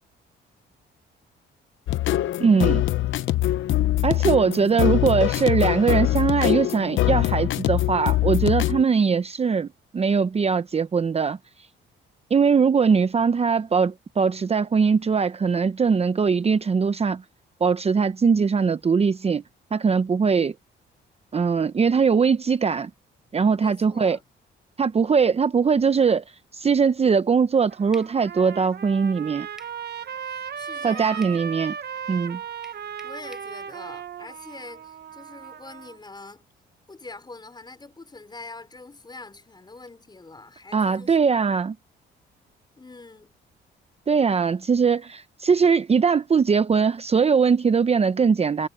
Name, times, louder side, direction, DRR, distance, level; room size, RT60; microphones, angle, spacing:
sound 1, 1.9-8.8, left 14 dB, 75° left, 0.8 m, -23 dB
voice 1, 2.4-2.8 4.0-9.7 9.9-11.4 12.3-17.2 17.6-19.4 19.7-20.5 21.3-22.9 23.3-24.2 24.8-26.2 26.5-29.5 30.8-31.8 32.1-32.4 40.7-41.7 44.1-48.7, right 5 dB, 30° right, 0.8 m, -21 dB
voice 2, 23.5-24.2 30.2-31.7 33.0-36.5 36.9-41.2 42.8-43.3, left 3 dB, 20° left, 5.4 m, -44 dB
Trumpet, 27.5-36.0, right 8 dB, 55° right, 1.2 m, -36 dB
sound 2, 27.9-28.2 29.6-29.8 31.2-31.4 32.6-33.5, equal, 5° right, 4.8 m, -48 dB
cardioid pair, 90°, 20 cm